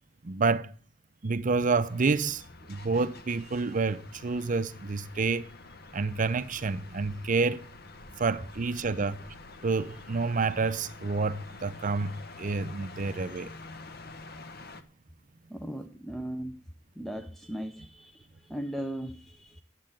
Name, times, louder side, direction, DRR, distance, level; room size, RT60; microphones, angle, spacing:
voice 1, 0.2-0.7 1.2-5.5 5.9-7.6 8.2-9.2 9.6-13.5, right 4 dB, 40° right, 0.6 m, -28 dB
sound 1, 1.8-14.8, left 3 dB, 50° left, 0.9 m, -48 dB
voice 2, 15.5-16.6 17.0-19.6, right 1 dB, ahead, 0.5 m, -38 dB
11.0 x 7.5 x 7.4 m
head